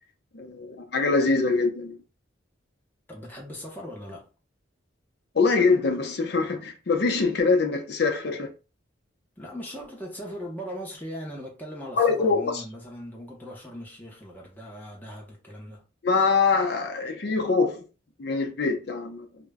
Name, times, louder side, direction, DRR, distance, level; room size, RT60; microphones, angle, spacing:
voice 1, 0.3-2.0 5.3-8.5 12.0-12.6 16.0-17.8 18.2-19.3, left 4 dB, 55° left, 0.5 m, -24 dB
voice 2, 3.1-4.3 9.4-15.8, equal, 10° left, 0.7 m, -39 dB
2.1 x 2.0 x 3.4 m
head